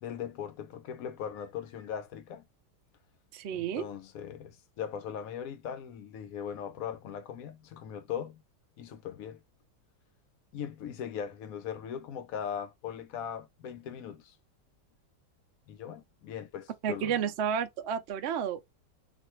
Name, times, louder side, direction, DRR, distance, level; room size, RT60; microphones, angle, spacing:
voice 1, 0.0-2.5 3.5-8.4 8.8-9.4 10.5-14.4 15.7-17.2, left 8 dB, 70° left, 0.9 m, -39 dB
voice 2, 3.3-3.8 16.8-18.6, right 8 dB, 80° right, 0.6 m, -31 dB
4.1 x 2.5 x 3.0 m
omnidirectional pair, 1.9 m